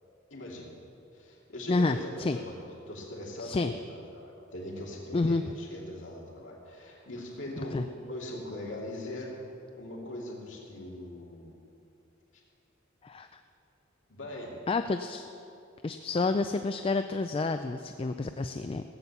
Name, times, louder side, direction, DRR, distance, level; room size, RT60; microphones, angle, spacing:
voice 1, 0.3-0.8 1.1-2.6 2.9-9.4 9.8-11.6 12.3-12.4 14.1-14.6, left 1 dB, 65° left, -3 dB, 2.4 m, -41 dB
voice 2, 1.7-2.4 3.4-3.7 5.1-5.5 7.7-7.8 13.0-13.3 14.7-15.3 15.8-18.8, left 3 dB, 25° left, 8 dB, 0.3 m, -29 dB
16.0 x 8.4 x 7.1 m, 2.7 s
head